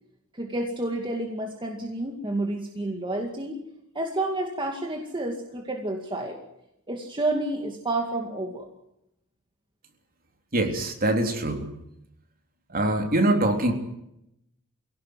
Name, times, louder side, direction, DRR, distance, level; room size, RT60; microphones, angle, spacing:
voice 1, 0.3-3.6 3.9-6.4 6.9-8.7, right 2 dB, 20° right, 1 dB, 2.2 m, -30 dB
voice 2, 10.5-11.7 12.7-13.7, right 1 dB, 40° right, 3 dB, 3.6 m, -23 dB
24.0 x 17.5 x 9.5 m, 0.83 s
head